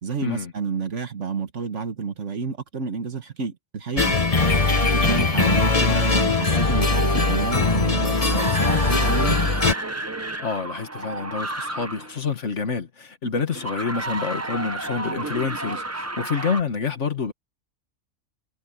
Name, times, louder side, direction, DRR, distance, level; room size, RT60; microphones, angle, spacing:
voice 1, 0.0-4.2 4.6-9.4, right 5 dB, 60° right, 1.8 m, -30 dB
sound 1, 4.0-9.7, left 3 dB, 25° left, 1.3 m, -20 dB
sound 2, 7.9-12.2 13.5-16.6, right 2 dB, 15° right, 0.8 m, -31 dB
voice 2, 10.4-17.3, left 5 dB, 55° left, 1.9 m, -28 dB
omnidirectional pair, 1.5 m